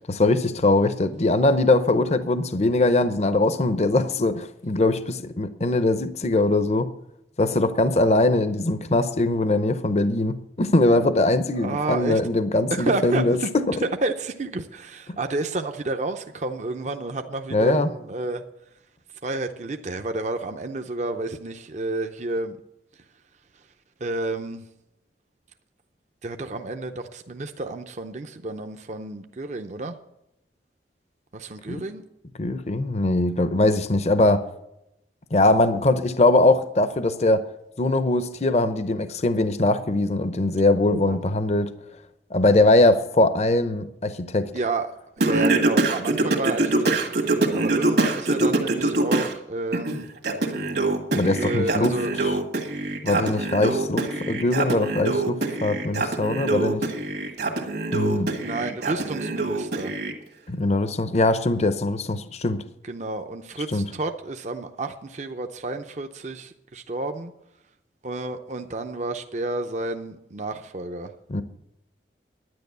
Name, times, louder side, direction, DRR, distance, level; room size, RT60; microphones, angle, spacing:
voice 1, 0.1-6.9 7.4-13.6 17.5-17.9 31.7-31.8 32.4-34.5 35.3-37.4 37.8-41.7 42.3-44.5 51.1-51.9 53.0-56.9 57.9-58.3 60.5-62.6 63.7-63.9 71.3-71.4, left 2 dB, 35° left, 11 dB, 0.6 m, -21 dB
voice 2, 11.5-12.2 12.7-13.5 13.8-18.4 19.2-22.6 24.0-24.6 26.2-30.0 31.3-32.0 40.9-41.2 44.5-44.9 45.2-50.1 51.4-52.1 58.4-59.9 62.8-67.3 68.0-71.1, right 2 dB, 40° right, 6 dB, 0.6 m, -30 dB
Singing, 45.2-49.3 49.7-60.1, right 2 dB, 65° right, 1.7 m, -24 dB
10.5 x 9.8 x 6.7 m, 0.87 s
head